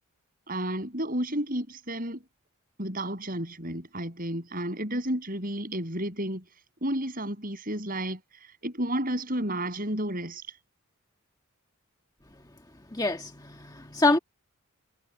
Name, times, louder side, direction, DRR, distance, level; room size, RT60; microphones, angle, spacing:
voice 1, 0.5-2.2 2.8-6.4 6.8-8.2 8.6-10.4, right 1 dB, 40° right, 7.0 m, -31 dB
voice 2, 12.9-14.2, left 2 dB, 15° left, 1.6 m, -25 dB
head